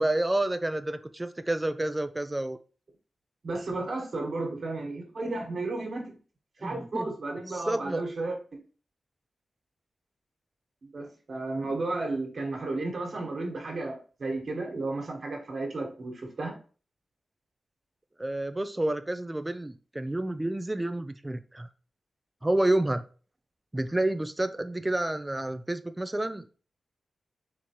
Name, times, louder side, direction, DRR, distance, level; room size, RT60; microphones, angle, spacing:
voice 1, 0.0-2.6 6.6-7.1 7.5-8.0 18.2-21.7 22.4-23.0 23.7-26.5, right 1 dB, 15° right, 10 dB, 0.3 m, -29 dB
voice 2, 3.4-6.2 6.6-8.3 10.8-16.6, right 2 dB, 60° right, 0 dB, 1.5 m, -33 dB
4.4 x 3.8 x 2.9 m, 0.38 s
cardioid pair, 70°, 0 cm